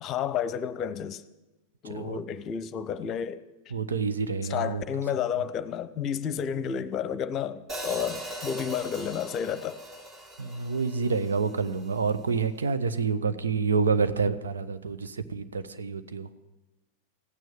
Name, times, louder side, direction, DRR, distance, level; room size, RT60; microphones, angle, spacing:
voice 1, 0.0-1.2 1.8-3.5 4.5-9.8, left 8 dB, 35° left, 15 dB, 0.8 m, -31 dB
voice 2, 3.7-4.8 10.4-16.3, right 5 dB, 70° right, 10 dB, 1.0 m, -28 dB
Hi-hat, 7.7-11.9, right 1 dB, 30° right, 3.3 m, -40 dB
16.0 x 9.3 x 9.1 m, 1.1 s
figure-of-eight pair, 90°, 0 cm